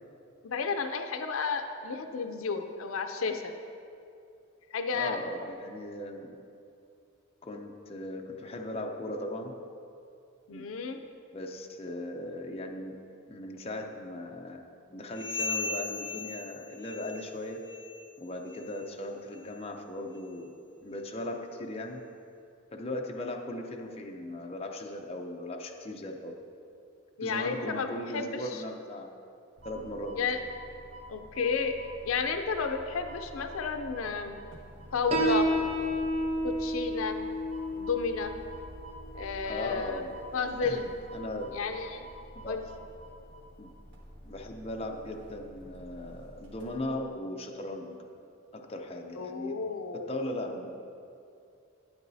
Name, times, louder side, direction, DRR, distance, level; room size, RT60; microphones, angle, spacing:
voice 1, 0.4-3.5 4.7-5.2 10.5-11.0 27.2-28.6 30.2-30.4 31.1-31.7 32.0-34.4 34.9-35.5 36.4-37.2 37.8-38.3 39.1-40.0 40.3-40.8 41.5-42.1 42.5-42.6 49.2-50.1, left 5 dB, 75° left, 7 dB, 0.5 m, -32 dB
voice 2, 4.9-6.4 7.4-9.5 10.5-10.7 11.3-13.0 13.3-17.6 18.2-20.5 20.8-22.0 22.7-26.3 27.2-29.1 29.6-30.3 39.4-40.1 40.6-41.5 42.3-42.6 43.6-43.7 44.2-48.0 48.5-49.5 49.9-50.7, left 1 dB, 30° left, 1 dB, 0.6 m, -38 dB
sound 1, 15.1-17.3 17.6-18.0 18.4-18.7 19.3-19.4 20.1-20.2 21.0-21.1, left 4 dB, 10° left, 1.6 m, -37 dB
sound 2, 29.6-47.0, equal, 55° right, 1.5 m, -48 dB
Piano, 35.1-42.2, equal, 30° right, 0.7 m, -33 dB
12.0 x 8.6 x 2.7 m, 2.6 s
head